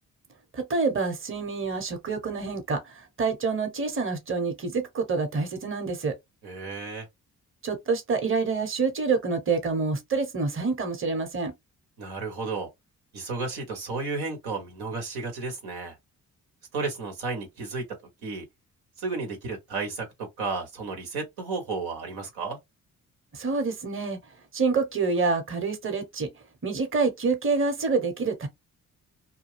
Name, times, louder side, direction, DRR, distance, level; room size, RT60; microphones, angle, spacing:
voice 1, 0.5-2.8 3.2-6.1 7.6-11.5 23.3-24.2 24.5-26.3 26.6-28.5, right 4 dB, 35° right, 1.0 m, -27 dB
voice 2, 6.4-7.1 12.0-12.7 13.1-16.0 16.7-17.8 18.2-18.4 19.0-22.6, right 4 dB, 85° right, 1.2 m, -33 dB
2.4 x 2.2 x 3.3 m
supercardioid pair, 50°, 36 cm